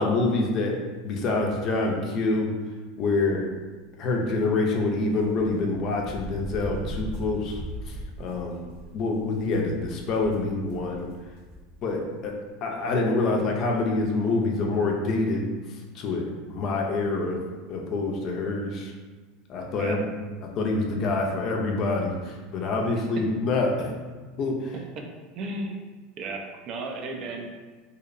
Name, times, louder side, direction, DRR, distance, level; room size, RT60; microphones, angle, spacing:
voice 1, 0.0-2.5 3.0-3.5 4.0-8.7 8.9-11.1 11.8-15.5 15.9-17.4 17.7-18.9 19.5-20.1 20.4-23.9 24.4-24.7, left 3 dB, 45° left, 0 dB, 0.4 m, -26 dB
sound 1, 5.2-11.9 12.2-12.3 13.4-13.5 13.8-14.0, equal, 75° right, 1.0 m, -39 dB
voice 2, 25.4-25.8 26.2-27.5, right 2 dB, 45° right, 3 dB, 0.3 m, -34 dB
2.6 x 2.0 x 2.4 m, 1.3 s
supercardioid pair, 130°, 0 cm